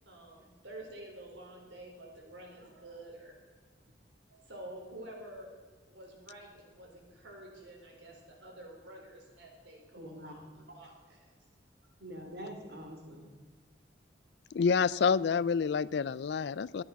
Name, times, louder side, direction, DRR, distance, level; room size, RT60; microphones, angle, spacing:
voice 1, 0.1-3.3 4.3-5.5 5.8-11.3, right 1 dB, 85° right, 0 dB, 4.3 m, -49 dB
voice 2, 10.0-10.7 12.0-13.3, equal, 60° right, 3 dB, 2.8 m, -45 dB
voice 3, 14.5-16.8, left 5 dB, 65° left, 20 dB, 0.4 m, -28 dB
14.0 x 11.0 x 5.9 m, 1.5 s
head